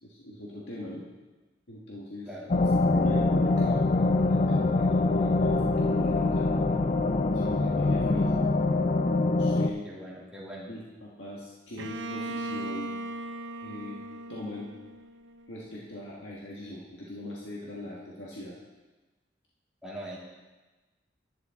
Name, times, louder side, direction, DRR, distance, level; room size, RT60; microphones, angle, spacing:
voice 1, 0.0-1.0 1.7-2.3 2.9-6.5 7.3-8.3 9.1-9.9 10.7-13.0 13.6-14.0 14.3-14.7 15.5-18.5, left 1 dB, 85° left, -5 dB, 1.7 m, -40 dB
sound 1, 2.5-9.7, left 2 dB, 40° left, 0.5 m, -24 dB
voice 2, 9.8-10.7 19.8-20.2, right 1 dB, 5° right, -7 dB, 2.6 m, -41 dB
Bowed string instrument, 11.8-15.5, right 1 dB, 75° right, 0.6 m, -38 dB
11.5 x 10.5 x 3.7 m, 1.2 s
head